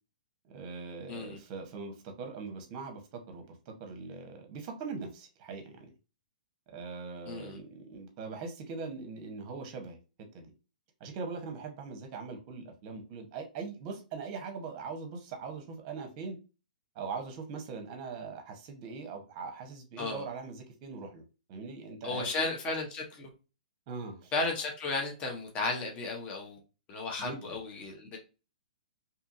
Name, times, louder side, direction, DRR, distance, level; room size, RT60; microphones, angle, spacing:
voice 1, 0.4-5.9 6.7-10.0 10.3-10.5 11.0-16.4 16.9-21.2 21.5-22.3 23.9-24.3 27.2-27.6, right 4 dB, 35° right, 4 dB, 0.8 m, -41 dB
voice 2, 7.3-7.6 20.0-20.2 22.0-23.3 24.3-26.6 26.9-28.2, left 3 dB, 25° left, 1 dB, 0.8 m, -34 dB
2.8 x 2.5 x 2.5 m, 0.32 s
hypercardioid pair, 135°, 5 cm